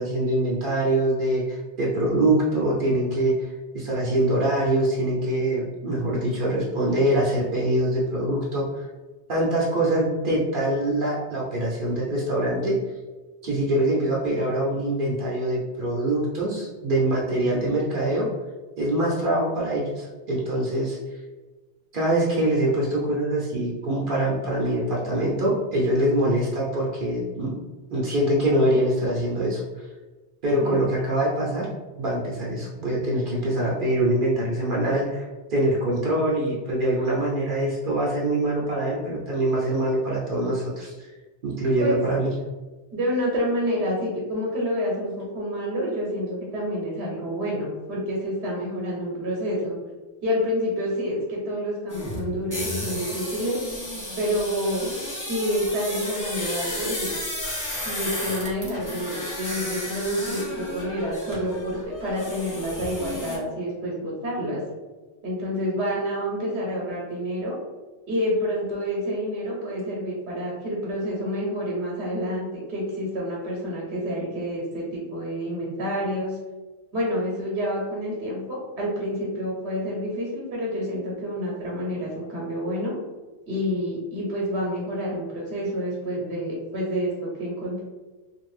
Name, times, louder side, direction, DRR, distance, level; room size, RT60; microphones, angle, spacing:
voice 1, 0.0-8.9 9.3-12.7 13.4-18.3 18.8-21.0 21.9-27.6 27.9-29.9 30.4-31.7 32.0-41.1 41.4-42.3, right 1 dB, 60° right, -4 dB, 0.7 m, -24 dB
voice 2, 42.9-49.8 50.2-53.6 54.2-54.9 55.3-57.1 57.8-64.6 65.2-67.6 68.1-76.4 76.9-82.9 83.5-87.8, equal, 80° right, -3 dB, 1.0 m, -28 dB
sound 1, 51.9-63.4, left 1 dB, 25° left, 0.5 m, -33 dB
2.5 x 2.4 x 3.1 m, 1.2 s
omnidirectional pair, 1.1 m